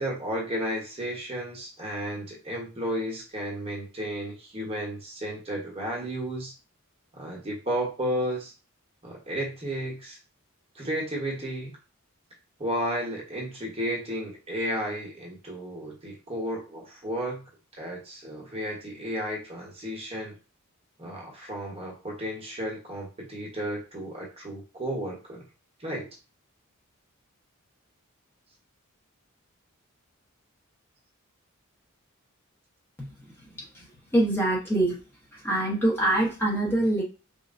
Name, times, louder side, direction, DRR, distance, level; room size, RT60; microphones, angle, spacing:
voice 1, 0.0-6.6 7.1-8.5 9.0-10.2 10.7-11.8 12.6-17.4 17.7-20.4 21.0-25.5 25.8-26.1, equal, 30° right, -2 dB, 1.1 m, -33 dB
voice 2, 33.0-33.3 33.6-33.8 34.1-35.0 35.3-37.0, right 1 dB, 10° left, -4 dB, 0.9 m, -25 dB
5.3 x 2.3 x 2.5 m, 0.32 s
head